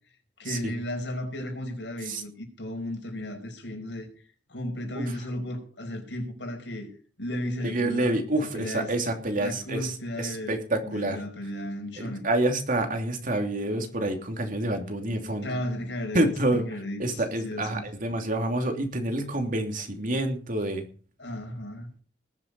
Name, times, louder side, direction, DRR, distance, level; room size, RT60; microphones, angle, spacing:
voice 1, 0.4-4.1 4.5-6.9 7.2-8.2 8.5-8.9 9.3-10.6 10.8-12.3 15.4-17.9 21.2-21.9, left 1 dB, 85° left, 5.5 m, -34 dB
voice 2, 7.6-11.2 12.0-15.5 16.1-16.6 17.0-20.8, right 1 dB, 50° right, 3.0 m, -28 dB
20.0 x 7.5 x 5.4 m
head